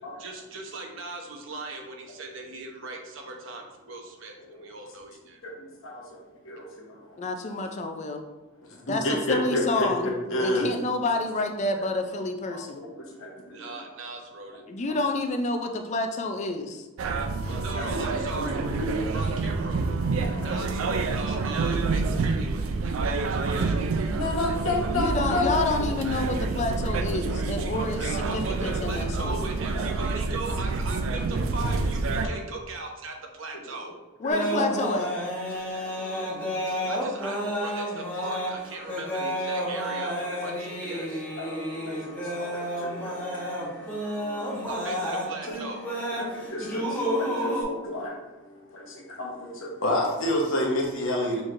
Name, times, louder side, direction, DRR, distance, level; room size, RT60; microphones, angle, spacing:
voice 1, 0.2-5.4 13.5-14.6 17.6-18.6 19.1-19.9 20.4-23.9 28.0-33.9 36.9-41.2 44.7-45.8, right 2 dB, 65° right, 2 dB, 0.8 m, -39 dB
voice 2, 5.4-7.2 8.7-10.7 12.5-13.8 17.8-18.0 18.3-18.5 18.8-18.9 20.3-20.7 24.1-25.9 27.6-27.7 28.8-28.9 29.7-29.9 31.6-31.7 32.1-32.3 33.8-33.9 34.2-34.3 35.7-35.9 36.3-36.9 41.0-41.1 41.4-41.5 41.7-44.9 45.6-45.7 46.2-51.4, left 1 dB, 70° left, -1 dB, 1.1 m, -31 dB
voice 3, 7.2-8.2 8.9-10.1 10.4-12.8 14.7-16.9 24.9-29.4 34.2-35.1, left 2 dB, 35° left, 5 dB, 0.4 m, -29 dB
sound 1, 17.0-32.3, right 3 dB, 85° right, 0.4 m, -28 dB
sound 2, 34.3-47.6, equal, 10° left, 0.9 m, -31 dB
6.2 x 3.3 x 2.5 m, 1.1 s
head